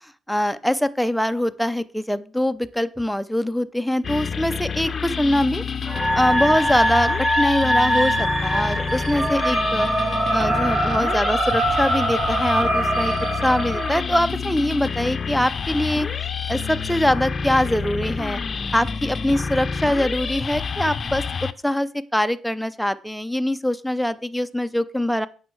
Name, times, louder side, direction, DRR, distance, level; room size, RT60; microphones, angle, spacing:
voice 1, 0.3-5.6 6.1-9.9 10.3-13.1 13.4-16.1 16.5-18.4 18.7-21.2 21.6-25.3, left 1 dB, ahead, 11 dB, 0.6 m, -23 dB
sound 1, 4.0-21.5, left 5 dB, 40° left, 0.6 m, -28 dB
sound 2, 5.8-14.0, right 1 dB, 15° right, 3.1 m, -23 dB
8.6 x 6.5 x 4.6 m, 0.38 s
cardioid pair, 100°, 0 cm